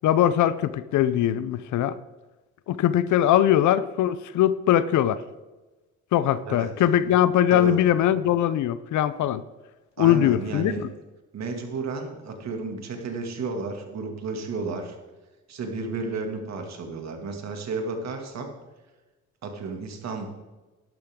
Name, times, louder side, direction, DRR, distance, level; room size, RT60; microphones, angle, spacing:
voice 1, 0.0-2.0 2.7-5.2 6.1-9.4 10.0-10.9, left 11 dB, 75° left, 0.6 m, -21 dB
voice 2, 10.0-10.8 11.3-15.0 15.5-18.5 19.4-20.3, right 4 dB, 60° right, 2.3 m, -32 dB
12.0 x 11.5 x 3.7 m
cardioid pair, 90°, 30 cm